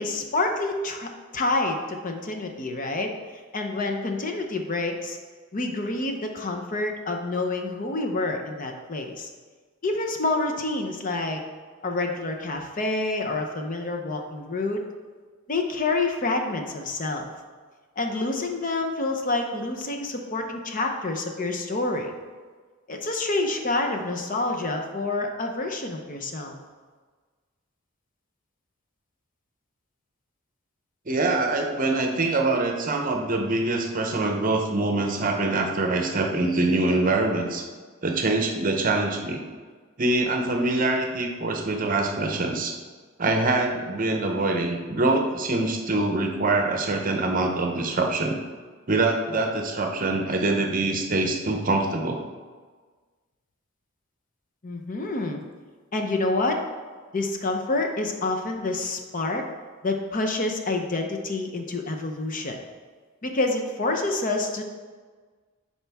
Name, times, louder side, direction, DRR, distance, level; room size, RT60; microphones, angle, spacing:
voice 1, 0.0-5.2 5.5-9.3 9.8-11.4 11.8-14.8 15.5-17.3 18.0-22.1 22.9-26.5 54.6-55.4 55.9-56.6 57.1-59.4 59.8-62.6 63.2-64.6, left 2 dB, 40° left, 3 dB, 0.7 m, -28 dB
voice 2, 31.1-37.7 38.0-39.4 40.0-42.7 43.2-48.4 48.9-52.2, right 2 dB, 40° right, 3 dB, 0.7 m, -24 dB
10.0 x 4.4 x 3.5 m, 1.5 s
head